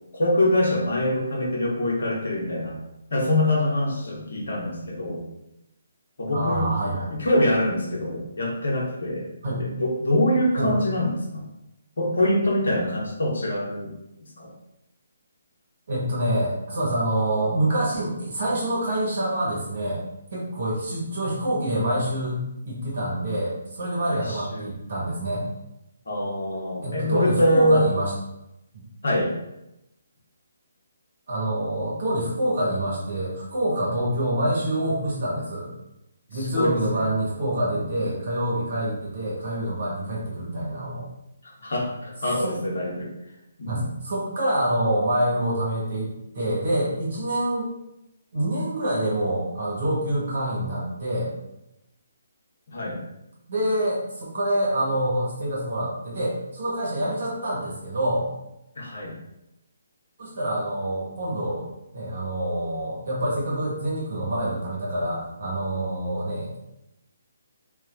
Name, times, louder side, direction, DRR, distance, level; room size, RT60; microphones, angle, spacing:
voice 1, 0.1-2.8 3.1-5.2 6.2-6.7 7.1-9.3 9.6-11.4 12.0-13.9 14.4-14.5 24.3-24.7 26.1-27.9 29.0-29.3 36.3-37.1 37.6-37.9 41.4-43.1 43.6-43.9 52.7-53.0 58.8-59.1, left 1 dB, 60° left, -2 dB, 1.0 m, -24 dB
voice 2, 6.3-7.1 9.4-9.6 10.6-10.8 15.9-20.0 20.3-22.4 22.6-25.5 26.8-28.1 28.7-28.8 31.3-35.7 36.3-41.1 42.4-42.5 43.7-46.1 46.3-47.7 48.3-51.3 53.5-58.3 60.2-66.6, right 1 dB, 55° right, -5 dB, 1.3 m, -26 dB
3.1 x 2.5 x 2.6 m, 0.88 s
figure-of-eight pair, 140°, 0 cm